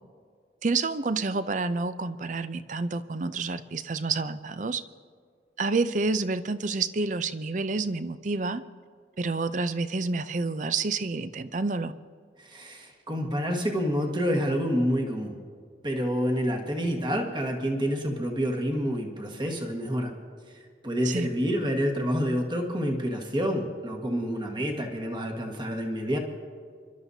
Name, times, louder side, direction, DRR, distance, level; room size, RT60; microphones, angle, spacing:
voice 1, 0.6-4.8 5.6-8.6 9.2-11.9 21.0-21.3, right 3 dB, 45° right, 13 dB, 0.5 m, -29 dB
voice 2, 12.4-15.4 15.8-20.1 20.8-26.2, equal, 25° right, 2 dB, 1.5 m, -28 dB
27.0 x 12.5 x 2.8 m, 2.1 s
head